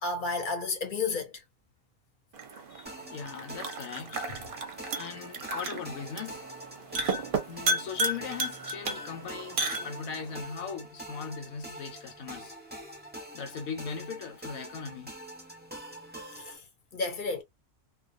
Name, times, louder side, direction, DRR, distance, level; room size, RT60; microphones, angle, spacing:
voice 1, 0.0-1.3 2.7-2.9 6.9-7.1 16.3-16.6 16.9-17.4, left 4 dB, 45° left, 0.8 m, -32 dB
sound 1, 2.3-10.3, right 2 dB, 50° right, 0.7 m, -34 dB
sound 2, 2.9-16.6, right 1 dB, 10° right, 0.6 m, -45 dB
voice 2, 3.1-4.2 5.0-6.4 7.5-12.6 13.3-15.1, left 6 dB, 85° left, 1.0 m, -39 dB
2.3 x 2.3 x 2.5 m
omnidirectional pair, 1.4 m